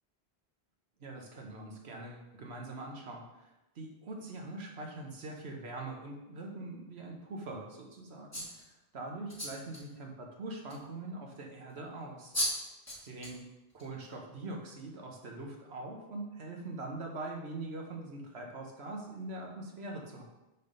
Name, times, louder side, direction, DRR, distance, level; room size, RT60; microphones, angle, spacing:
voice 1, 1.0-3.5 3.7-8.7 8.9-12.3 13.0-13.5 13.7-20.2, right 2 dB, 80° right, 1 dB, 1.3 m, -43 dB
sound 1, 8.3-8.6 9.3-9.8 10.7-10.8 12.0-12.1 12.3-12.6 12.9-13.4 13.8-14.0, equal, 15° left, 1.3 m, -35 dB
6.4 x 3.4 x 5.3 m, 0.98 s
omnidirectional pair, 1.1 m